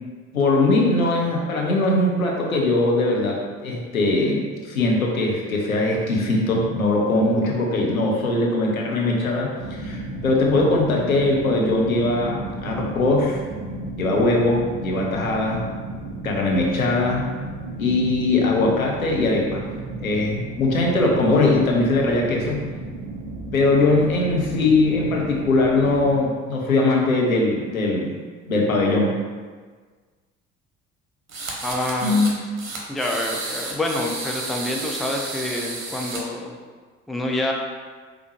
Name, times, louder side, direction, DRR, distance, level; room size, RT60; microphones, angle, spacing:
voice 1, 0.3-13.4 14.0-15.6 16.2-17.2 17.8-19.6 20.0-22.6 23.5-28.1 28.5-29.1 32.0-32.3, left 2 dB, 85° left, -1 dB, 0.8 m, -21 dB
sound 1, 9.6-26.2, right 2 dB, 50° right, 0.7 m, -33 dB
sound 2, 31.3-32.3 32.6-36.2, right 2 dB, 75° right, 0.9 m, -32 dB
voice 2, 31.6-32.2 32.9-36.5 37.1-37.5, left 1 dB, ahead, 0 dB, 0.4 m, -27 dB
4.9 x 3.5 x 3.1 m, 1.5 s
figure-of-eight pair, 55°, 41 cm